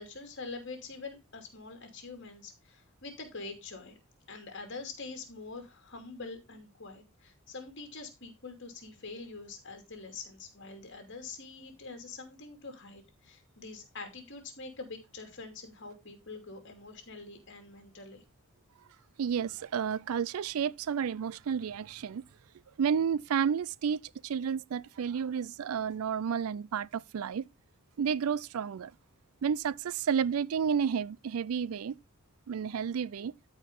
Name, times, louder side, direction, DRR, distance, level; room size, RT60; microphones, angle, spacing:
voice 1, 0.0-4.0 4.3-18.2, left 3 dB, 55° left, 2.7 m, -45 dB
voice 2, 19.2-22.2 22.8-27.5 28.0-28.9 29.4-32.0 32.5-33.3, right 7 dB, 75° right, 0.4 m, -31 dB
13.5 x 4.8 x 3.7 m
head